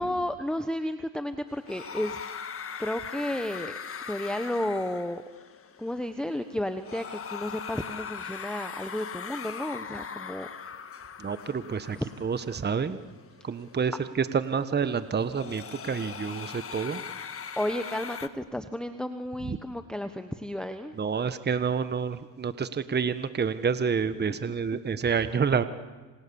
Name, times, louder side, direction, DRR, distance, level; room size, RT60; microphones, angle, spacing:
voice 1, 0.0-2.2 2.8-3.8 4.1-5.2 5.8-10.5 11.9-12.1 17.6-21.0 24.3-24.4, left 1 dB, ahead, 8 dB, 1.3 m, -32 dB
sound 1, 1.5-18.3, left 7 dB, 30° left, 1.7 m, -41 dB
voice 2, 11.2-12.0 12.2-13.0 13.4-17.0 19.5-19.6 21.0-25.6, right 6 dB, 20° right, 12 dB, 1.4 m, -28 dB
28.0 x 27.0 x 7.2 m, 1.3 s
supercardioid pair, 100°, 44 cm